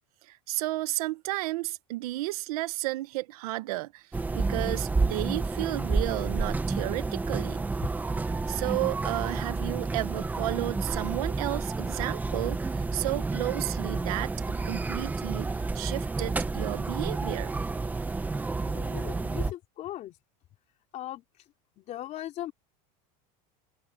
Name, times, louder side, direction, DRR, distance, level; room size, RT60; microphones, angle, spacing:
voice 1, 0.3-4.0 4.3-7.6 8.5-17.5, right 19 dB, 80° right, 1.1 m, -33 dB
sound 1, 4.1-19.5, right 3 dB, 10° right, 1.0 m, -30 dB
voice 2, 18.7-20.1 20.9-21.2 21.8-22.5, left 13 dB, 40° left, 3.9 m, -38 dB
open air
supercardioid pair, 150°, 19 cm